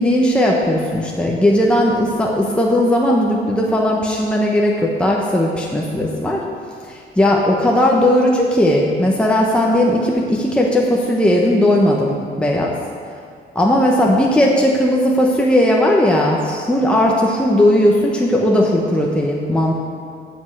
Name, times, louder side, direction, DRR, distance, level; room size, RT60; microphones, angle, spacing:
voice 1, 0.0-6.4 6.8-12.7 13.5-19.8, left 1 dB, 5° left, -2 dB, 1.2 m, -16 dB
9.3 x 5.5 x 7.8 m, 2.2 s
cardioid pair, 90°, 20 cm